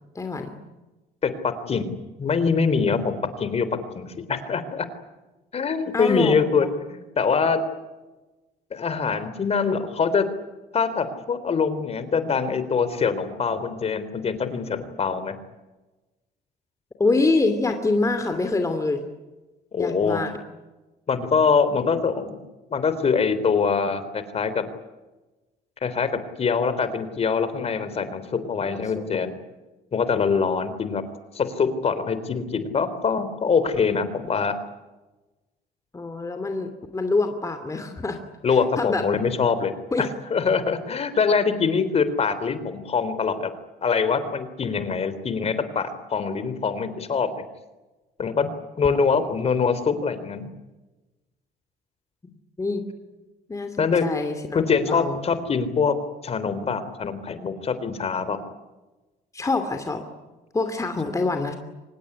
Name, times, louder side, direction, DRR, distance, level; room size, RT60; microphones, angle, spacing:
voice 1, 0.1-0.5 5.9-6.6 17.0-19.0 19.8-20.3 28.6-29.1 35.9-38.2 38.5-39.0 39.9-40.1 52.6-52.8 53.5-54.6 54.9-55.2 59.3-60.0 60.5-61.5, left 3 dB, 20° left, 7 dB, 2.7 m, -25 dB
voice 2, 1.2-3.7 3.9-4.9 5.5-6.7 6.9-7.6 8.7-10.3 10.7-15.4 19.7-20.2 21.1-22.4 22.7-24.6 25.8-26.1 26.4-29.3 29.9-31.0 31.3-34.6 38.4-39.7 40.0-43.5 43.8-47.4 48.2-48.5 48.8-50.5 53.8-54.0 54.5-55.9 56.2-58.4, left 5 dB, 40° left, 12 dB, 3.6 m, -24 dB
25.5 x 20.0 x 9.8 m, 1.1 s
cardioid pair, 110°, 17 cm